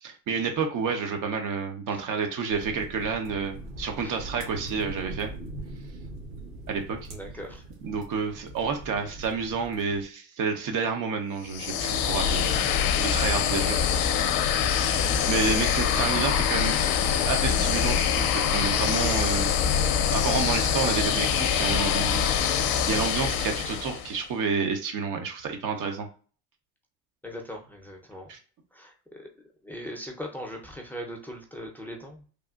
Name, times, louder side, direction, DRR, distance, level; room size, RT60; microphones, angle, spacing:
voice 1, 0.0-5.3 6.7-7.1 7.8-12.5 13.0-13.8 14.2-14.3 15.3-16.8 17.3-19.5 19.8-22.3 22.7-26.1 28.3-28.4, right 5 dB, 50° right, 4 dB, 0.9 m, -29 dB
sound 1, 2.5-10.0, right 2 dB, 90° right, 1.2 m, -41 dB
voice 2, 7.1-7.6 16.8-16.9 27.2-28.3 28.7-28.9 29.2-29.3 29.6-32.2, equal, 5° left, 1 dB, 0.6 m, -39 dB
sound 2, 11.5-24.2, left 8 dB, 60° left, 0.6 m, -24 dB
3.4 x 2.4 x 2.4 m, 0.39 s
supercardioid pair, 85°, 40 cm